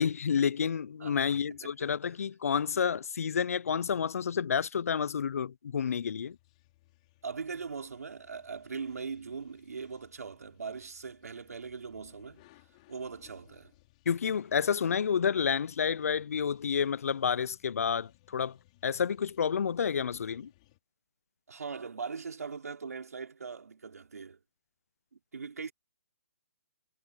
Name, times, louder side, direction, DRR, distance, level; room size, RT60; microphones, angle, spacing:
voice 1, 0.0-6.4 14.1-18.6 18.8-20.5, left 7 dB, 70° left, 0.5 m, -29 dB
voice 2, 1.0-1.7 7.2-12.5 12.9-13.7 21.5-24.4 25.3-25.7, right 5 dB, 90° right, 4.8 m, -40 dB
sound 1, 6.0-20.8, left 18 dB, 25° left, 4.9 m, -64 dB
hypercardioid pair, 170°, 8 cm